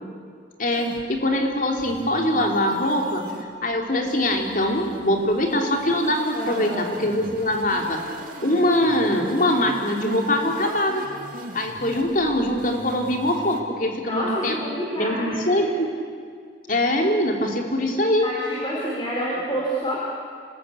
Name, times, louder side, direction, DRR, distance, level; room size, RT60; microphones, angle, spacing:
voice 1, 0.6-3.2 3.6-8.0 8.4-11.0 11.5-14.6 15.0-15.9 16.7-18.3, left 1 dB, 50° left, 2 dB, 3.3 m, -23 dB
sound 1, 0.7-13.6, right 1 dB, 50° right, 2.7 m, -40 dB
voice 2, 6.3-6.8 14.1-15.7 18.2-20.0, equal, 25° left, -5 dB, 4.4 m, -28 dB
26.5 x 20.0 x 8.5 m, 2.1 s
head